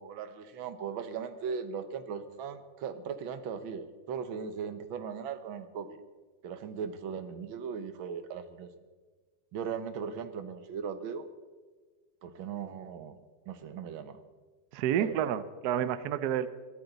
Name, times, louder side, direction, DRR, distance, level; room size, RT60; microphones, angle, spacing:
voice 1, 0.0-6.0 6.4-8.7 9.5-11.2 12.2-13.2 13.5-14.2 15.0-15.3, right 6 dB, 90° right, 11 dB, 1.8 m, -38 dB
voice 2, 14.7-16.5, right 10 dB, 65° right, 14 dB, 1.1 m, -29 dB
22.0 x 13.0 x 4.0 m, 1.4 s
omnidirectional pair, 2.1 m